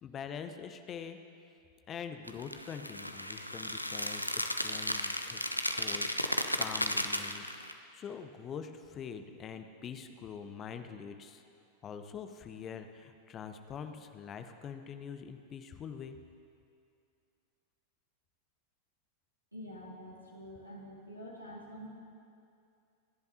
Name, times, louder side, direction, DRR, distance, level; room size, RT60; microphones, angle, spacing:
voice 1, 0.0-1.2 1.9-6.2 6.6-7.6 7.9-11.4 11.8-16.2, left 7 dB, 30° left, 8 dB, 0.9 m, -44 dB
sound 1, 2.3-7.7, left 1 dB, 90° left, 0.6 m, -34 dB
voice 2, 19.5-21.9, equal, 90° right, -4 dB, 2.1 m, -47 dB
26.5 x 10.5 x 2.9 m, 2.6 s
figure-of-eight pair, 90°, 0 cm